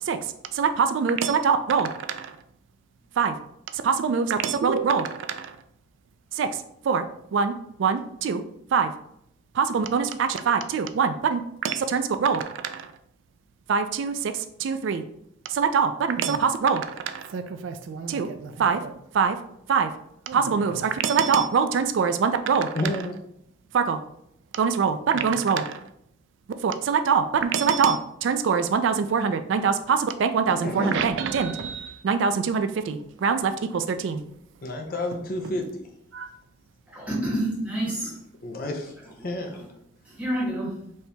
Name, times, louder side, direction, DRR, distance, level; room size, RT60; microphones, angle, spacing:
voice 1, 0.0-2.4 3.2-3.3 3.7-5.6 6.3-7.0 7.3-7.5 7.8-8.4 8.7-8.9 9.5-12.9 13.7-14.1 14.6-15.0 15.5-19.4 19.7-19.9 20.3-22.7 23.7-24.0 24.5-25.8 26.6-34.2 36.1-36.3, right 6 dB, 70° right, 0.3 m, -24 dB
voice 2, 22.7-23.2 30.6-31.0 34.6-35.8 38.4-38.9 39.2-39.6, left 1 dB, 45° left, 0.5 m, -30 dB
voice 3, 36.9-38.2 39.2-39.7 40.0-40.7, right 1 dB, 5° right, 1.3 m, -29 dB
4.3 x 2.8 x 3.3 m
head